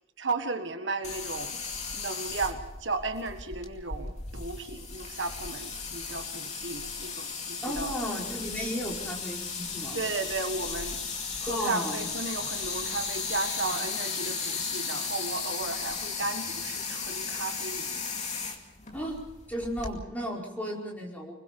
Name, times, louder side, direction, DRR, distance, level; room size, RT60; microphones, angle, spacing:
voice 1, 0.2-1.6 1.9-7.9 9.9-11.0 11.4-18.0, right 3 dB, 65° right, 7 dB, 1.6 m, -34 dB
sound 1, 1.0-20.0, left 5 dB, 35° left, 2.5 m, -35 dB
voice 2, 7.6-10.0 11.5-12.1 18.9-19.2 19.5-21.3, equal, 10° left, -2 dB, 5.0 m, -34 dB
25.5 x 22.0 x 5.3 m, 0.96 s
head